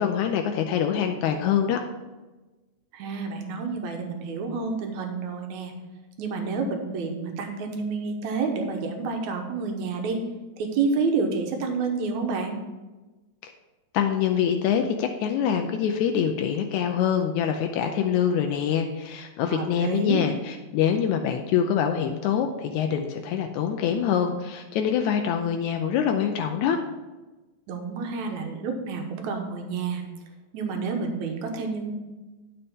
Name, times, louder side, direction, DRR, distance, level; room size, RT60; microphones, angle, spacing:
voice 1, 0.0-1.8 13.4-13.5 13.9-26.8, left 8 dB, 80° left, 5 dB, 1.9 m, -25 dB
voice 2, 2.9-5.7 6.2-10.2 10.6-12.6 19.5-20.2 27.7-30.0 30.5-31.9, right 4 dB, 75° right, 3 dB, 2.4 m, -29 dB
10.0 x 6.8 x 3.6 m, 1.2 s
omnidirectional pair, 3.4 m